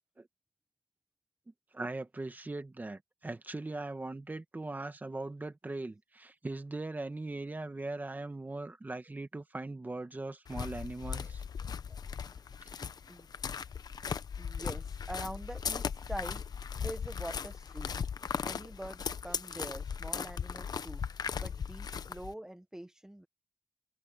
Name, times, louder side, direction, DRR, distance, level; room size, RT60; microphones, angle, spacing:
voice 1, 1.7-11.4, right 2 dB, 25° right, 1.7 m, -40 dB
sound 1, 10.5-22.3, left 6 dB, 65° left, 0.8 m, -38 dB
voice 2, 14.4-16.4 16.8-18.0 18.4-21.0 21.4-23.3, right 1 dB, 10° right, 1.2 m, -44 dB
wide cardioid pair, 110°, 7 cm